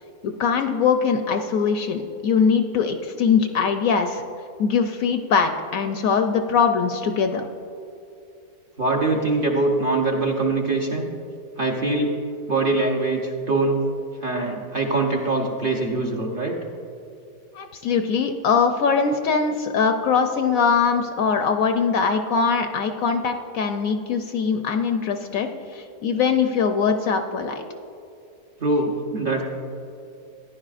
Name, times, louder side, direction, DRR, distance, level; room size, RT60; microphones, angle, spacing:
voice 1, 0.2-4.2 4.6-7.5 17.5-27.6, left 5 dB, 70° left, 6 dB, 0.9 m, -22 dB
voice 2, 8.8-11.1 11.6-12.2 12.5-13.8 14.2-16.6 28.6-29.4, right 2 dB, 40° right, -1 dB, 0.9 m, -23 dB
14.5 x 10.5 x 2.5 m, 2.6 s
omnidirectional pair, 1.7 m